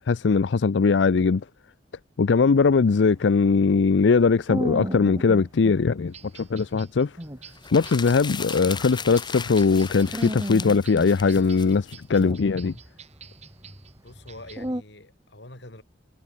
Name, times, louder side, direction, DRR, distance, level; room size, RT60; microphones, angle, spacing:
voice 1, 0.1-1.4 2.2-7.1 7.7-12.7, left 4 dB, 90° left, 0.5 m, -20 dB
sound 1, 2.4-5.8 6.2-6.3 6.8-6.9 7.1-9.7 10.0-11.9 12.2-14.8, equal, 20° right, 3.1 m, -35 dB
sound 2, 6.1-14.7, right 8 dB, 40° right, 6.6 m, -49 dB
sound 3, 7.5-12.2, left 6 dB, 25° left, 1.2 m, -37 dB
voice 2, 14.0-15.8, left 2 dB, 75° left, 4.9 m, -45 dB
head